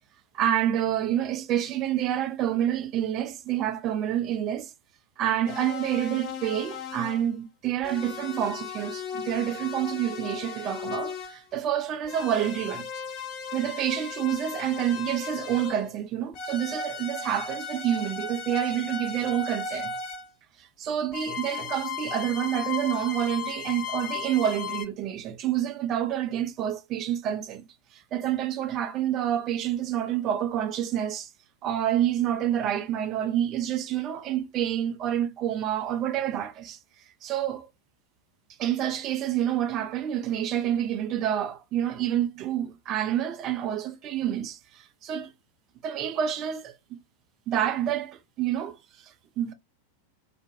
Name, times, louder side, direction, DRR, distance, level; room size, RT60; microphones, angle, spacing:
voice 1, 0.3-4.7 5.2-12.8 13.5-19.9 20.6-27.6 27.9-31.3 31.6-36.8 37.2-37.7 38.6-45.3 45.8-47.0 47.5-49.5, right 10 dB, 35° right, 0.4 m, -28 dB
sound 1, 5.5-7.3 7.8-11.4 12.0-16.0 16.3-20.3 21.1-24.9, left 5 dB, 40° left, 0.5 m, -36 dB
2.5 x 2.2 x 2.5 m
figure-of-eight pair, 90°, 0 cm